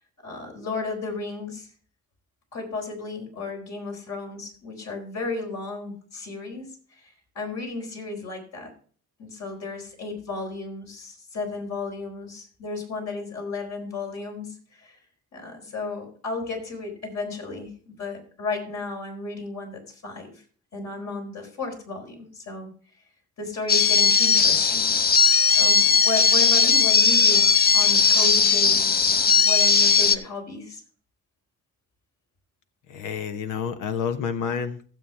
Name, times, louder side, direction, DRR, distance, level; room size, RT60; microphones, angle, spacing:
voice 1, 0.2-1.7 2.5-8.7 9.2-15.0 15.3-20.4 20.7-22.7 23.4-24.9 25.6-30.8, left 3 dB, 65° left, 1 dB, 4.4 m, -34 dB
sound 1, 23.7-30.2, left 5 dB, 30° left, 0.8 m, -18 dB
voice 2, 32.9-34.9, left 7 dB, 85° left, 9 dB, 1.1 m, -29 dB
15.5 x 7.5 x 3.3 m, 0.43 s
cardioid pair, 90°, 30 cm